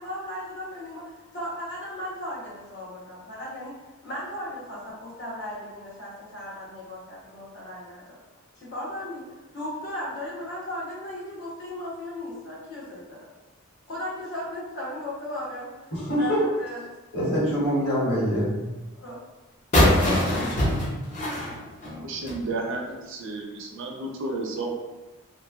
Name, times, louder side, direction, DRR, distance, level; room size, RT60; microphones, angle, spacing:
voice 1, 0.0-3.7 4.0-8.2 8.6-13.3 13.9-15.7 16.2-16.8 18.9-19.2, left 1 dB, 55° left, -6 dB, 0.9 m, -36 dB
voice 2, 15.9-16.5 17.1-18.6, equal, 90° left, -9 dB, 1.3 m, -24 dB
sound 1, 19.7-22.4, left 1 dB, 30° left, 0.6 m, -22 dB
voice 3, 22.0-24.7, right 2 dB, 55° right, 0 dB, 0.5 m, -32 dB
3.0 x 2.2 x 2.3 m, 1.1 s
head